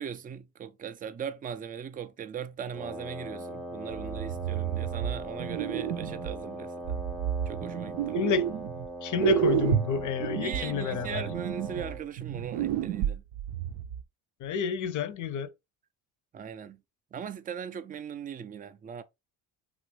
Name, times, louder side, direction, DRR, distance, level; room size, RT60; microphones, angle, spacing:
voice 1, 0.0-7.0 7.5-8.3 10.4-13.2 16.3-16.8 17.1-19.0, right 7 dB, 20° right, 0.3 m, -39 dB
Wind instrument woodwind instrument, 2.7-12.1, right 1 dB, ahead, 0.7 m, -40 dB
sound 1, 3.9-6.4 6.9-8.9 9.2-14.0, right 9 dB, 75° right, 0.6 m, -30 dB
voice 2, 8.1-8.5 9.0-11.3 14.4-15.5, left 7 dB, 40° left, 0.6 m, -30 dB
2.9 x 2.5 x 3.0 m
hypercardioid pair, 60°, 45 cm